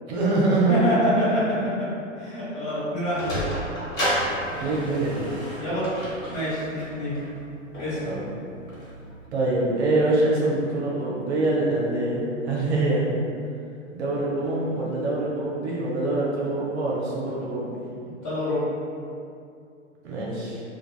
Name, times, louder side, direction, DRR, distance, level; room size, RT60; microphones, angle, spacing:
voice 1, 0.1-0.8 4.2-5.4 8.0-8.2 9.3-13.1 13.9-17.7 20.0-20.6, right 2 dB, 55° right, -4 dB, 0.6 m, -25 dB
voice 2, 0.7-1.4 2.1-3.5 5.6-6.0 6.3-7.2 7.8-8.0 18.2-18.7, equal, 35° left, -11 dB, 1.4 m, -26 dB
Sliding door, 2.7-9.3, equal, 75° left, 0.9 m, -32 dB
2.3 x 2.3 x 2.3 m, 2.4 s
figure-of-eight pair, 105°, 39 cm